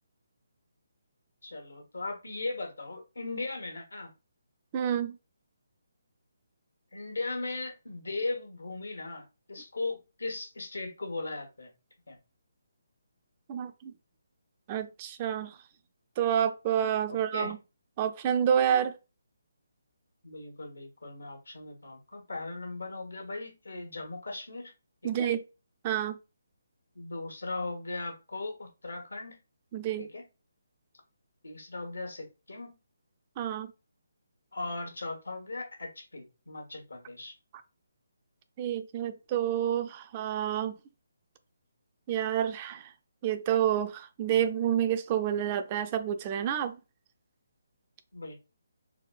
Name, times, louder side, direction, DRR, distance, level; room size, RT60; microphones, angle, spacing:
voice 1, 1.4-4.1 6.9-11.7 12.1-12.2 17.1-17.5 20.2-24.7 25.0-25.3 26.9-29.4 30.0-30.2 31.4-32.7 34.5-37.3 48.1-48.4, left 3 dB, 85° left, 1.1 m, -38 dB
voice 2, 4.7-5.2 13.5-13.9 14.7-15.6 16.2-17.6 18.0-18.9 25.0-25.4 25.8-26.2 29.7-30.1 33.4-33.7 38.6-40.7 42.1-42.9 43.2-46.8, right 9 dB, 30° right, 0.3 m, -29 dB
4.0 x 2.3 x 2.4 m
figure-of-eight pair, 155°, 0 cm